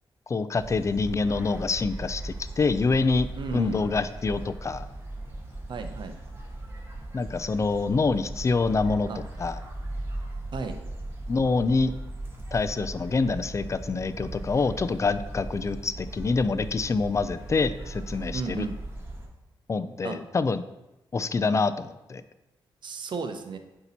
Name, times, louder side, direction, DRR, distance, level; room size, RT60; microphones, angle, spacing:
voice 1, 0.3-3.3 3.5-4.8 7.1-9.1 9.4-9.6 11.3-11.9 12.5-18.7 19.7-20.6 21.1-22.2, left 4 dB, 35° left, 13 dB, 0.3 m, -26 dB
sound 1, 0.6-19.3, right 1 dB, 25° right, 1.4 m, -38 dB
voice 2, 3.4-3.8 5.7-6.2 9.1-9.2 10.5-10.8 18.3-18.8 20.0-20.2 22.8-23.6, right 4 dB, 60° right, 7 dB, 0.7 m, -34 dB
8.0 x 2.9 x 4.1 m, 0.96 s
cardioid pair, 65°, 9 cm